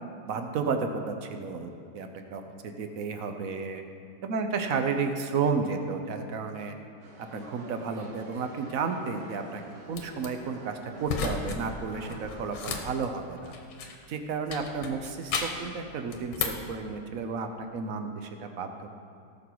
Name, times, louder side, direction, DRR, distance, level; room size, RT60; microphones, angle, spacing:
voice 1, 0.2-3.8 4.2-6.7 7.3-9.6 9.9-13.5 14.1-18.9, right 5 dB, 55° right, 6 dB, 1.0 m, -32 dB
sound 1, 7.0-12.9, right 2 dB, 90° right, 2.7 m, -49 dB
sound 2, 9.9-10.3 11.0-11.6 11.9-14.1 14.5-15.7 16.1-16.7, left 5 dB, 90° left, 1.9 m, -34 dB
17.5 x 6.5 x 4.7 m, 2.5 s
omnidirectional pair, 2.1 m